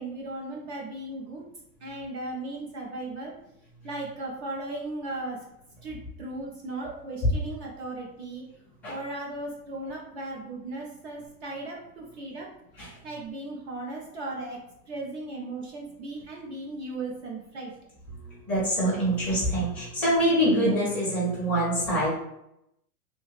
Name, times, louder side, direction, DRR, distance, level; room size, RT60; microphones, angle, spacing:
voice 1, 0.0-1.4 1.8-3.4 3.8-5.4 5.8-8.4 8.9-12.5 13.0-14.6 14.9-17.7, right 2 dB, 45° right, -1 dB, 0.5 m, -36 dB
voice 2, 18.2-22.1, right 1 dB, 5° left, -9 dB, 0.5 m, -25 dB
3.2 x 2.2 x 3.1 m, 0.80 s
supercardioid pair, 165°, 49 cm